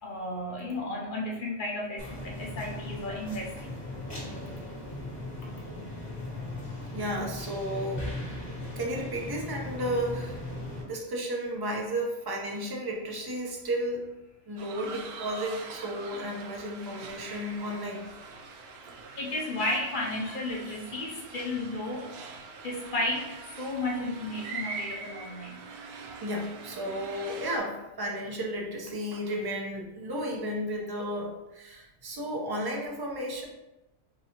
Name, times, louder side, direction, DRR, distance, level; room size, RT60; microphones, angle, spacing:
voice 1, 0.0-3.8 5.4-5.5 19.2-22.1 22.6-25.6, left 2 dB, 55° left, -2 dB, 0.6 m, -33 dB
sound 1, 2.0-10.8, left 1 dB, 35° left, 1.7 m, -38 dB
voice 2, 6.9-8.1 8.8-10.4 10.8-14.1 14.5-18.1 18.8-18.9 26.2-33.4, equal, 40° right, 0 dB, 0.3 m, -33 dB
sound 2, 14.6-27.6, right 4 dB, 65° right, 0.7 m, -43 dB
4.6 x 2.7 x 2.8 m, 0.98 s
omnidirectional pair, 1.3 m